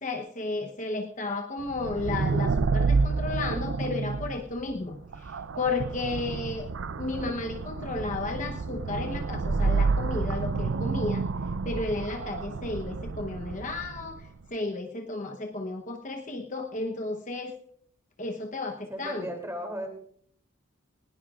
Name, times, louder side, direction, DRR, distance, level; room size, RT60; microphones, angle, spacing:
voice 1, 0.0-6.7 7.0-11.3 11.6-17.6 18.2-19.3, left 3 dB, 35° left, 3 dB, 0.9 m, -33 dB
sound 1, 1.7-14.3, right 4 dB, 65° right, 0.5 m, -29 dB
voice 2, 18.9-19.9, equal, 15° right, 4 dB, 2.8 m, -35 dB
19.5 x 18.0 x 2.4 m, 0.63 s
head